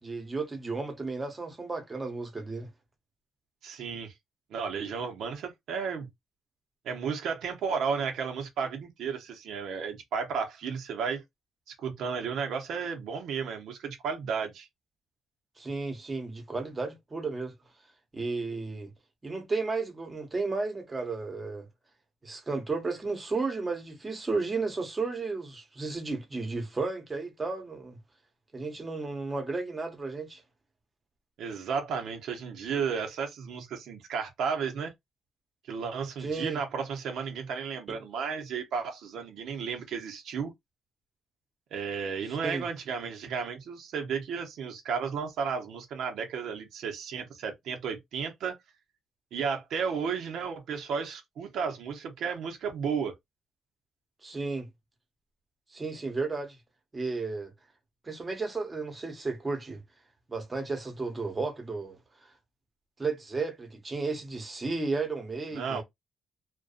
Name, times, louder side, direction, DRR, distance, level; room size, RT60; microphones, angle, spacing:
voice 1, 0.0-2.7 15.6-17.5 18.1-18.9 19.2-21.7 22.2-28.0 28.5-30.4 36.2-36.6 37.9-38.0 42.4-42.6 54.2-54.7 55.7-56.6 56.9-57.5 58.0-59.8 60.3-62.3 63.0-65.8, right 3 dB, 20° right, 0.9 m, -33 dB
voice 2, 3.6-4.1 4.5-6.1 6.8-11.2 11.7-14.7 31.4-34.9 35.7-40.5 41.7-48.6 49.3-53.1 65.5-65.8, right 6 dB, 80° right, 0.7 m, -33 dB
2.5 x 2.2 x 2.4 m
cardioid pair, 120°, 0 cm